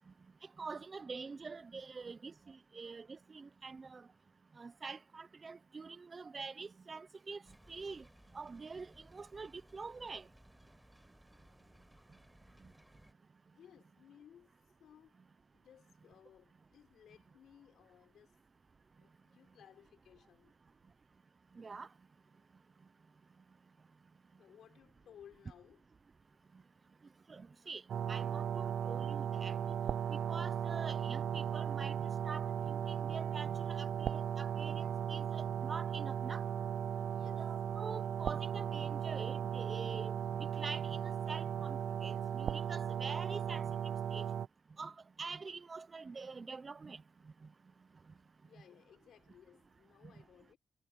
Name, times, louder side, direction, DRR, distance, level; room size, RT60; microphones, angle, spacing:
voice 1, 0.6-4.0 4.6-7.4 7.7-8.0 8.3-10.3 21.6-21.9 27.3-27.8 28.1-29.6 30.1-36.4 37.4-43.7 44.1-44.2 44.8-47.0, right 4 dB, 35° right, 0.6 m, -46 dB
sound 1, 7.4-13.1, equal, 5° right, 5.0 m, -62 dB
voice 2, 11.3-12.4 13.5-15.2 15.5-18.4 19.0-20.6 24.4-25.8 37.1-37.7 48.4-50.6, left 9 dB, 85° left, 6.2 m, -61 dB
sound 2, 27.9-44.5, right 8 dB, 75° right, 0.4 m, -37 dB
cardioid pair, 110°, 0 cm